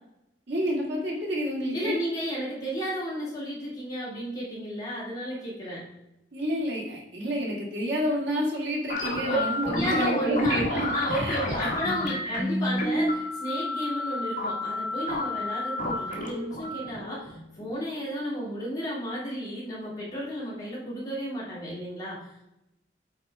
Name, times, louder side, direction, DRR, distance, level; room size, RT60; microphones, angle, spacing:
voice 1, 0.5-2.0 6.3-11.7 12.3-12.5, equal, 70° right, -3 dB, 2.1 m, -29 dB
voice 2, 1.7-5.8 9.2-9.4 9.7-10.6 10.9-22.2, equal, 20° left, -6 dB, 2.4 m, -33 dB
sound 1, 8.9-17.8, left 1 dB, 45° left, 1.3 m, -30 dB
8.4 x 4.3 x 3.4 m, 0.88 s
head